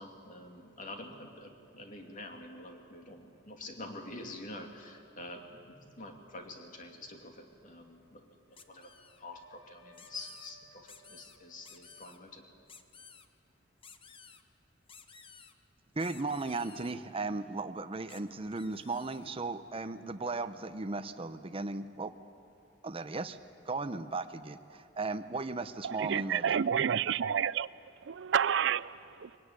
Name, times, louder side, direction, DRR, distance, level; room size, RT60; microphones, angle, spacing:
voice 1, 0.0-12.5, left 2 dB, 45° left, 3 dB, 2.6 m, -47 dB
Wind instrument woodwind instrument, 8.5-12.6, left 1 dB, 85° left, 2.9 m, -63 dB
sound 1, 8.6-9.2 9.9-10.5 10.9-11.4 11.6-12.2 12.7-13.3 13.8-14.4 14.9-15.5 16.0-17.0 18.1-18.2 18.5-19.3, left 6 dB, 30° left, 1.0 m, -55 dB
voice 2, 15.9-22.1 22.8-23.4 23.7-26.6, right 3 dB, 30° right, 9 dB, 0.8 m, -36 dB
voice 3, 25.8-27.7 28.0-29.3, right 8 dB, 65° right, 19 dB, 0.5 m, -30 dB
22.5 x 18.0 x 9.7 m, 2.8 s
head